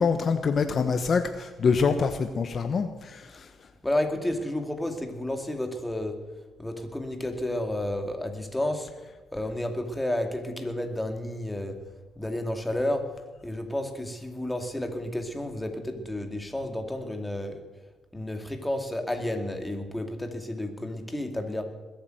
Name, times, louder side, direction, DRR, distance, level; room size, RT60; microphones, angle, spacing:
voice 1, 0.0-3.3, left 5 dB, 50° left, 8 dB, 1.1 m, -25 dB
voice 2, 3.8-6.2 6.6-8.9 9.3-11.7 12.2-13.0 13.4-17.6 18.1-21.6, left 1 dB, 10° left, 4 dB, 2.4 m, -31 dB
20.5 x 8.8 x 7.8 m, 1.2 s
cardioid pair, 90°, 0 cm